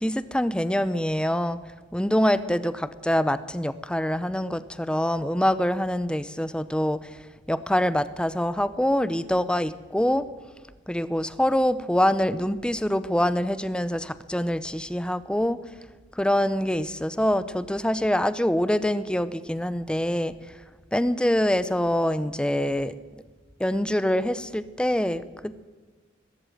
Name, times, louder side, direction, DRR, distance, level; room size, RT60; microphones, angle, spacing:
voice 1, 0.0-1.6 1.9-7.2 7.5-10.3 10.9-15.6 16.2-20.3 20.9-23.2 23.6-25.7, equal, 5° left, 15 dB, 0.7 m, -25 dB
21.5 x 13.0 x 9.1 m, 1.3 s
head